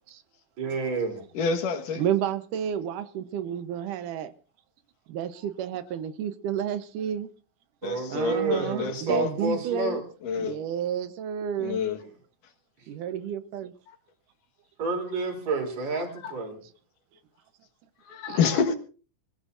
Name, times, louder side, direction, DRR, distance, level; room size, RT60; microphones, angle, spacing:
voice 1, 0.6-1.2 7.8-10.0 14.8-16.6, right 3 dB, 60° right, 4.7 m, -29 dB
voice 2, 1.3-2.1 7.8-9.3 10.2-10.6 11.6-12.0 15.9-16.4 18.0-18.8, left 6 dB, 90° left, 3.2 m, -28 dB
voice 3, 2.0-4.3 5.1-7.3 8.1-10.0 10.4-11.8 12.9-13.7 18.3-18.4, right 9 dB, 85° right, 2.5 m, -31 dB
26.0 x 16.0 x 2.6 m
omnidirectional pair, 3.6 m